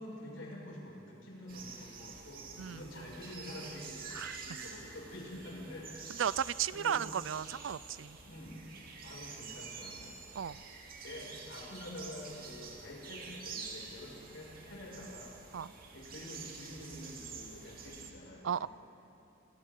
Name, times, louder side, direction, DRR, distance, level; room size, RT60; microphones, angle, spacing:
voice 1, 0.0-6.4 6.7-7.0 8.2-8.6 9.0-10.2 10.5-10.6 11.0-15.3 15.9-18.7, left 1 dB, 80° left, -4 dB, 6.5 m, -47 dB
sound 1, 1.5-18.1, right 5 dB, 50° right, 2.3 m, -48 dB
voice 2, 2.6-3.1 4.1-4.4 6.2-8.2 10.4-10.6 15.5-15.7 18.4-18.7, right 8 dB, 75° right, 19 dB, 0.4 m, -35 dB
27.5 x 27.0 x 3.9 m, 2.8 s
head